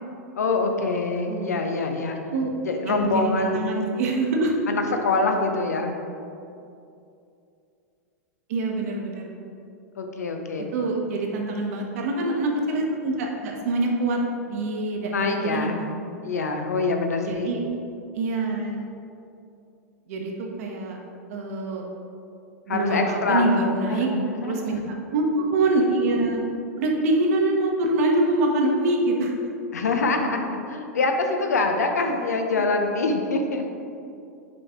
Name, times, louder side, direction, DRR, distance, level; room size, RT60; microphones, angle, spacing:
voice 1, 0.4-2.2 2.6-3.6 4.7-6.0 10.0-10.7 15.1-15.8 16.2-17.5 22.7-23.6 23.9-24.8 29.7-33.6, left 3 dB, 80° left, 4 dB, 0.7 m, -25 dB
voice 2, 1.3-1.6 2.3-2.5 2.9-4.5 8.5-9.3 10.7-14.2 14.5-15.9 17.3-17.6 18.1-18.8 20.1-21.0 21.3-21.8 22.7-24.1 24.4-24.8 25.1-26.4 26.8-29.3 32.0-32.2, right 2 dB, 65° right, 0 dB, 1.1 m, -25 dB
6.0 x 4.7 x 3.7 m, 2.6 s
hypercardioid pair, 100°, 9 cm